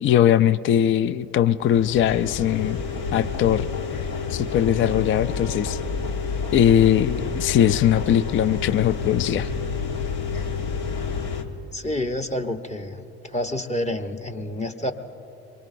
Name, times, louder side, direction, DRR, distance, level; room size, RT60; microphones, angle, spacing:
voice 1, 0.0-2.8 3.1-3.7 4.3-5.8 6.5-9.5, left 10 dB, 40° left, 14 dB, 0.4 m, -20 dB
sound 1, 1.6-11.4, left 5 dB, 70° left, 1.3 m, -29 dB
voice 2, 11.7-14.9, left 1 dB, 20° left, 5 dB, 1.1 m, -28 dB
24.5 x 22.5 x 2.6 m, 2.9 s
hypercardioid pair, 55°, 33 cm